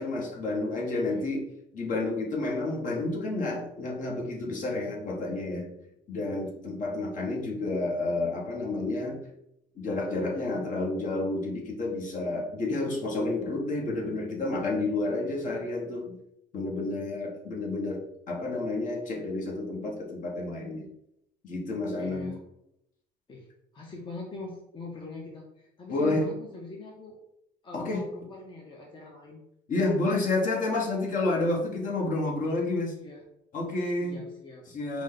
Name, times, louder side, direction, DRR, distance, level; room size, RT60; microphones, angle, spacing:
voice 1, 0.0-1.5 1.7-5.7 6.1-9.2 9.8-16.2 16.5-18.0 18.3-20.8 21.4-22.3 25.9-26.3 27.7-28.0 29.7-33.0 33.5-34.2 34.7-35.0, left 2 dB, 50° left, -1 dB, 1.2 m, -30 dB
voice 2, 22.0-22.4 23.3-27.2 27.6-29.4 33.0-33.2 34.0-34.6 34.9-35.0, left 3 dB, 30° left, -1 dB, 0.8 m, -43 dB
5.0 x 2.2 x 3.8 m, 0.80 s
cardioid pair, 110°, 17 cm